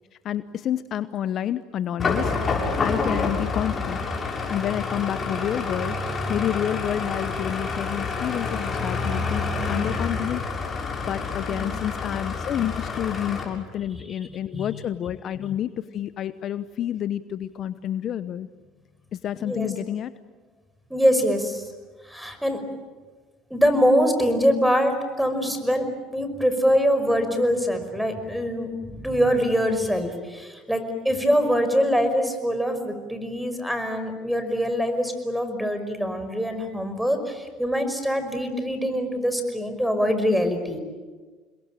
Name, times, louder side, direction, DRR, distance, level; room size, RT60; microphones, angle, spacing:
voice 1, 0.2-2.4 2.8-4.0 4.5-6.0 6.3-10.4 11.1-18.5 19.1-20.1, left 10 dB, 50° left, 13 dB, 0.9 m, -29 dB
sound 1, 2.0-13.4, left 4 dB, 30° left, 7.2 m, -28 dB
voice 2, 11.5-11.8 14.5-14.7 19.4-19.7 20.9-21.6 22.0-22.6 23.5-25.9 26.1-40.8, equal, ahead, 9 dB, 5.5 m, -24 dB
28.5 x 21.5 x 9.0 m, 1.4 s
supercardioid pair, 90°, 0 cm